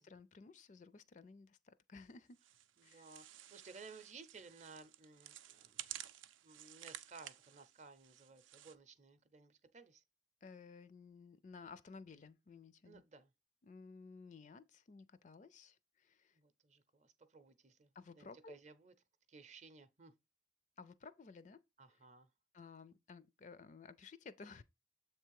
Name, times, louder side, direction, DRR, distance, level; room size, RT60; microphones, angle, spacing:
voice 1, 0.0-2.4 2.8-3.1 10.4-13.0 13.6-16.4 18.0-18.6 20.8-21.6 22.5-24.6, left 4 dB, 40° left, 0.4 m, -55 dB
sound 1, 2.4-8.8, right 12 dB, 85° right, 0.5 m, -53 dB
voice 2, 2.8-5.9 6.4-10.0 12.8-13.3 16.3-18.9 19.3-20.1 21.8-22.3, right 4 dB, 35° right, 0.6 m, -58 dB
7.4 x 3.3 x 4.6 m
head